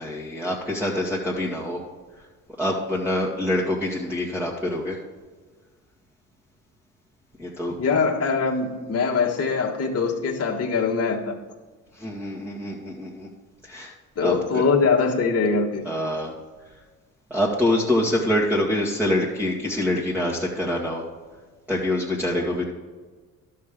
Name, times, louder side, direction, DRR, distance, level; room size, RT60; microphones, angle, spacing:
voice 1, 0.0-1.8 2.6-5.0 7.4-7.7 12.0-13.3 13.7-13.9 14.2-14.6 15.8-16.3 17.3-21.0 21.7-22.6, left 1 dB, 5° right, -4 dB, 1.7 m, -25 dB
voice 2, 7.8-11.3 14.2-15.8, left 5 dB, 40° left, -1 dB, 1.6 m, -22 dB
12.0 x 6.6 x 3.7 m, 1.4 s
supercardioid pair, 65°, 39 cm